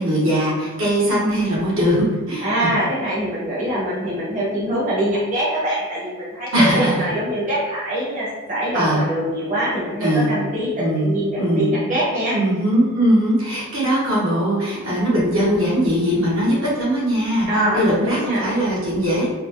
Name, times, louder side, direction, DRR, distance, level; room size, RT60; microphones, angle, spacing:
voice 1, 0.0-2.4 6.5-7.1 8.7-9.0 10.0-10.3 10.8-11.7 12.3-17.5 17.7-19.3, equal, 70° right, -6 dB, 1.2 m, -20 dB
voice 2, 2.4-12.4 17.5-18.5, right 1 dB, 35° right, -8 dB, 0.9 m, -23 dB
4.0 x 2.2 x 2.9 m, 1.3 s
head